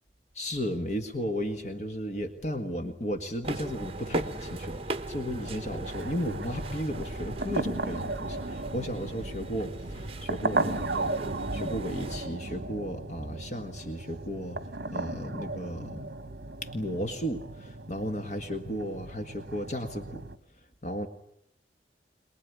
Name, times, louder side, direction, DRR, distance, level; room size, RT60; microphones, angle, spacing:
voice 1, 0.3-11.2 11.5-14.6 14.9-16.1 16.6-20.2 20.8-21.1, equal, 40° left, 6 dB, 1.8 m, -34 dB
sound 1, 3.4-12.3, right 2 dB, 35° right, 1.2 m, -38 dB
sound 2, 5.3-20.4, right 2 dB, 60° right, 1.2 m, -36 dB
23.0 x 21.0 x 9.5 m, 0.76 s
head